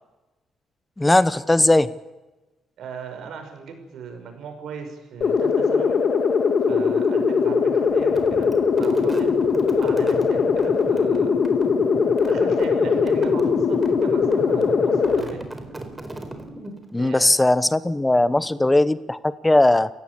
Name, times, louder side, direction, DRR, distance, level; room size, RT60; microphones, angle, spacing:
voice 1, 1.0-1.9 16.9-19.9, left 2 dB, 15° left, 15 dB, 0.9 m, -18 dB
voice 2, 2.8-6.0 6.7-8.5 8.8-11.4 12.2-15.5 17.0-17.3 18.2-18.8, right 6 dB, 70° right, 6 dB, 5.9 m, -38 dB
sound 1, 5.2-15.2, left 5 dB, 55° left, 2.3 m, -20 dB
sound 2, 8.0-17.0, right 2 dB, 15° right, 4.1 m, -36 dB
28.0 x 16.0 x 8.4 m, 1.1 s
cardioid pair, 90°, 0 cm